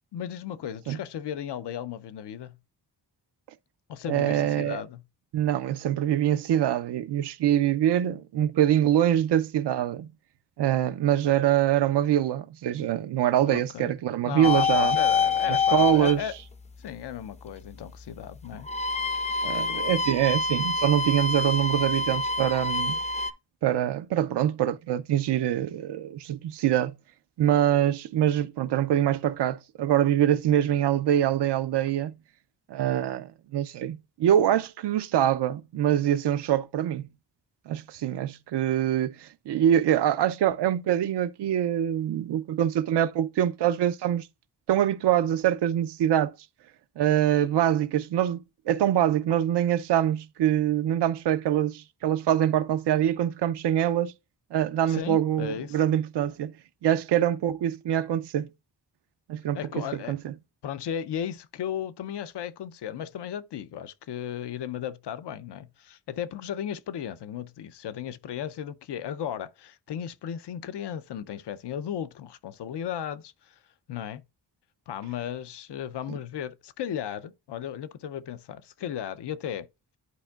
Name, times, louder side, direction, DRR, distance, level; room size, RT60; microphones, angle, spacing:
voice 1, 0.1-2.6 3.9-5.0 13.5-13.9 14.2-16.3 16.8-18.7 54.9-55.8 59.5-60.1 60.6-73.5 73.9-74.2 74.9-79.7, left 9 dB, 90° left, 0.6 m, -35 dB
voice 2, 4.1-4.8 5.3-10.1 10.6-15.0 15.5-16.2 19.4-23.0 23.6-27.0 27.4-32.1 32.7-37.1 37.7-44.3 44.7-46.3 47.0-54.1 54.5-56.5 56.8-58.5 59.3-60.3 76.1-76.2, right 11 dB, 85° right, 0.5 m, -24 dB
sound 1, 14.4-16.2 18.6-23.3, left 4 dB, 20° left, 0.4 m, -26 dB
11.5 x 4.4 x 2.3 m
wide cardioid pair, 100°, 40 cm